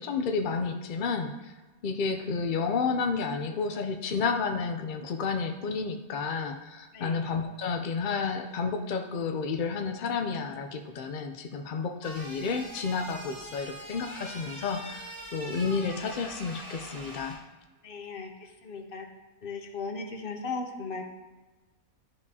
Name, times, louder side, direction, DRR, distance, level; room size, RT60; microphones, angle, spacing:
voice 1, 0.0-1.5 1.8-17.4, left 5 dB, 70° left, 5 dB, 0.4 m, -31 dB
voice 2, 6.9-7.2 17.8-19.1 19.4-21.1, left 4 dB, 50° left, 4 dB, 0.8 m, -37 dB
sound 1, 12.0-17.3, right 1 dB, 50° right, 2.7 m, -43 dB
11.5 x 5.2 x 2.7 m, 1.2 s
omnidirectional pair, 1.5 m